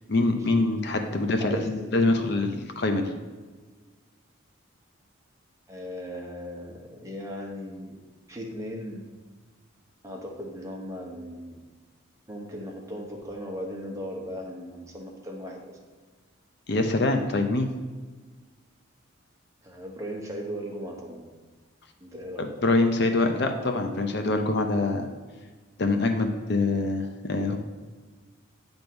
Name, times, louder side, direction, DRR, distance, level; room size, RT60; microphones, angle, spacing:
voice 1, 0.1-3.1 16.7-17.7 22.6-25.1 25.8-27.6, left 2 dB, 55° left, 5 dB, 0.6 m, -24 dB
voice 2, 1.4-2.0 5.7-7.9 8.3-9.0 10.0-11.6 12.3-15.8 19.6-21.3 22.0-22.5, equal, 15° right, -1 dB, 1.0 m, -37 dB
9.0 x 3.5 x 6.0 m, 1.4 s
head